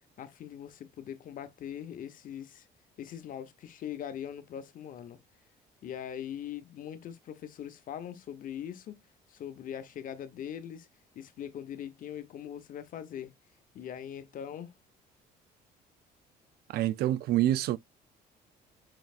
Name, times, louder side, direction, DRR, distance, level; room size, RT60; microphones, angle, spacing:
voice 1, 0.2-2.7 3.0-5.2 5.8-9.0 9.3-10.9 11.1-13.3 13.7-14.7, left 9 dB, 55° left, 0.9 m, -41 dB
voice 2, 16.7-17.8, right 13 dB, 70° right, 0.4 m, -26 dB
5.8 x 3.1 x 2.4 m
cardioid pair, 110°, 17 cm